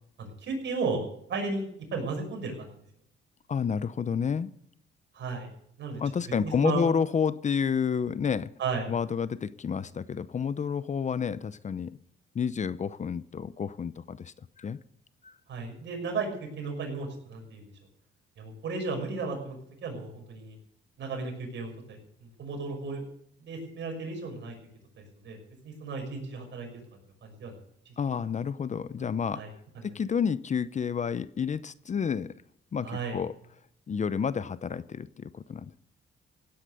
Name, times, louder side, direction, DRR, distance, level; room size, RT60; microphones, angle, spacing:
voice 1, 0.2-2.7 5.1-5.5 5.8-6.0 6.4-6.8 8.6-8.9 15.5-17.6 18.4-20.6 21.0-23.0 23.4-24.5 25.0-25.4 25.6-26.7 27.2-27.6 27.9-28.0 29.3-29.5 32.8-33.2, right 4 dB, 65° right, 2 dB, 6.2 m, -34 dB
voice 2, 3.5-4.5 6.0-8.5 8.9-11.9 12.3-14.8 15.2-15.3 28.0-29.4 29.8-32.3 32.7-33.4 33.9-35.8, left 6 dB, 35° left, 16 dB, 0.7 m, -30 dB
16.5 x 9.8 x 6.8 m, 0.71 s
cardioid pair, 90°, 20 cm